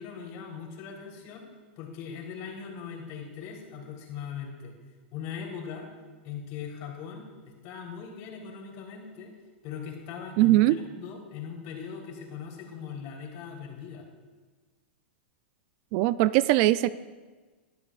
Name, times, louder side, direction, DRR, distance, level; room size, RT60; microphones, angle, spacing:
voice 1, 0.0-1.5 1.8-4.7 5.1-5.9 6.2-9.3 9.6-14.0, left 7 dB, 50° left, 0 dB, 3.8 m, -40 dB
voice 2, 10.4-10.8 15.9-16.9, right 16 dB, 50° right, 16 dB, 0.4 m, -21 dB
21.5 x 12.0 x 2.5 m, 1.4 s
hypercardioid pair, 125°, 6 cm